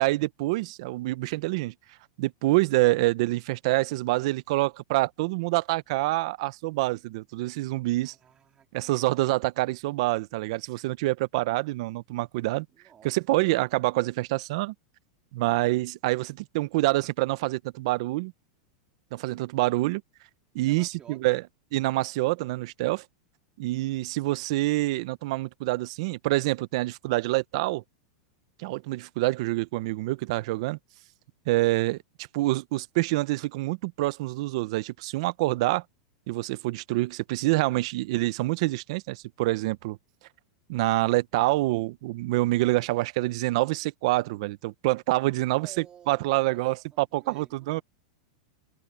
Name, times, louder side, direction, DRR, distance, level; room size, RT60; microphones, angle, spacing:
voice 1, 0.0-1.7 2.2-8.1 8.7-12.7 13.0-14.7 15.3-18.3 19.1-20.0 20.5-21.4 21.7-23.0 23.6-27.8 28.6-30.8 31.5-35.8 36.3-40.0 40.7-47.8, right 19 dB, 55° right, 0.8 m, -26 dB
voice 2, 7.9-9.0 12.7-13.6 20.6-21.4 45.2-46.6 46.9-47.8, right 9 dB, 20° right, 3.6 m, -53 dB
supercardioid pair, 150°, 4 cm